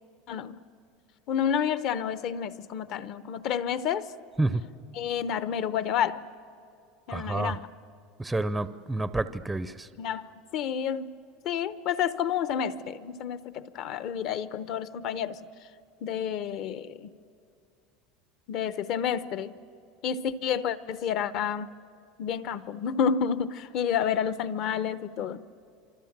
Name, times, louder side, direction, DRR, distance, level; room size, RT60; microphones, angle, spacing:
voice 1, 0.3-0.6 1.3-4.1 4.9-6.3 7.1-7.7 9.9-11.1 11.4-15.4 16.0-17.1 18.5-19.6 20.0-21.7 22.2-25.4, left 8 dB, 45° left, 14 dB, 0.8 m, -30 dB
voice 2, 7.1-7.6 8.2-9.9, right 2 dB, 5° right, 12 dB, 0.5 m, -29 dB
28.5 x 26.0 x 7.4 m, 2.5 s
supercardioid pair, 155°, 0 cm